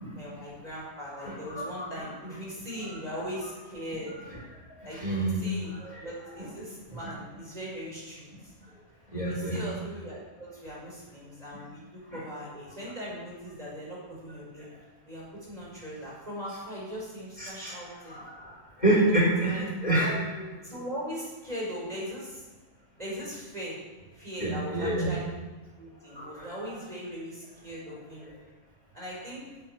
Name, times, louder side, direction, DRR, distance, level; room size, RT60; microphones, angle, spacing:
voice 1, 0.1-4.2 4.8-8.5 9.1-14.7 15.1-18.2 18.9-19.0 19.4-22.5 23.0-23.8 24.1-25.4 25.8-28.3 28.9-29.4, equal, 30° right, -6 dB, 5.6 m, -40 dB
voice 2, 1.2-1.8 4.8-5.4 5.8-6.1 9.1-9.6 12.1-12.2 17.4-17.7 18.1-20.2 24.4-25.2 26.1-26.5, right 1 dB, 30° left, -5 dB, 4.5 m, -28 dB
11.5 x 8.4 x 9.1 m, 1.2 s
omnidirectional pair, 1.4 m